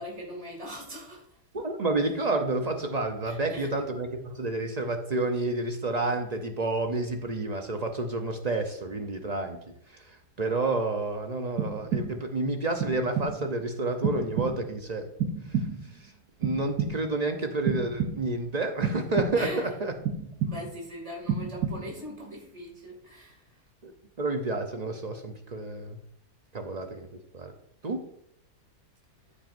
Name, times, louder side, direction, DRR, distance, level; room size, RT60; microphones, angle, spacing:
voice 1, 0.0-1.4 3.3-3.7 19.3-19.7 20.4-23.6, equal, 20° right, -1 dB, 2.4 m, -40 dB
voice 2, 1.5-9.6 10.1-15.1 15.5-15.6 16.0-16.1 16.4-19.9 23.8-23.9 24.2-26.0 26.5-27.1 27.3-27.5 27.8-28.1, right 2 dB, 50° right, 5 dB, 0.5 m, -30 dB
sound 1, 11.6-12.4 12.8-13.5 14.0-14.8 15.2-16.0 16.4-17.2 17.7-18.4 18.8-19.6 20.0-20.9 21.3-22.1, right 6 dB, 70° right, 1.3 m, -31 dB
14.0 x 6.0 x 2.6 m, 0.73 s
omnidirectional pair, 1.7 m